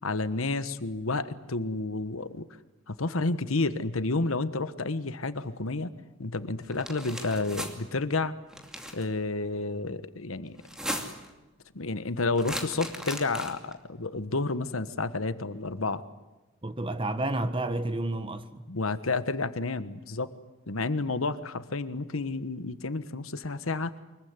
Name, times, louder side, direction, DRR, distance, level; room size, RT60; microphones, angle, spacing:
voice 1, 0.0-2.5 2.9-5.9 6.2-8.3 8.9-10.6 11.7-16.0 18.7-20.3 20.7-23.9, left 3 dB, 85° left, 1.3 m, -30 dB
sound 1, 6.7-7.7 8.5-9.0 10.6-11.3 12.4-13.7, equal, 5° right, 2.6 m, -37 dB
voice 2, 16.6-18.7, right 2 dB, 25° right, 1.3 m, -30 dB
24.5 x 22.5 x 9.7 m
head